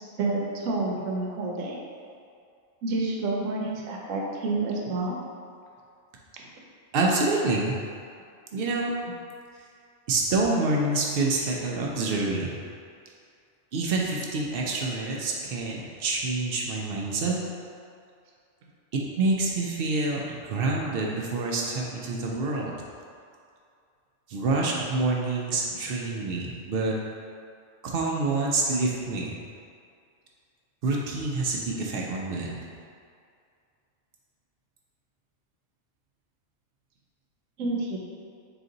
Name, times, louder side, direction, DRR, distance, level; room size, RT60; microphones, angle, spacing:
voice 1, 0.2-1.8 2.8-5.1 37.6-38.0, right 2 dB, 85° right, -1 dB, 1.0 m, -29 dB
voice 2, 6.9-7.8 8.5-8.9 10.1-12.6 13.7-17.4 18.9-22.7 24.3-26.9 27.8-29.4 30.8-32.5, right 3 dB, 60° right, -2 dB, 0.7 m, -27 dB
3.9 x 2.5 x 3.8 m, 2.3 s
omnidirectional pair, 1.3 m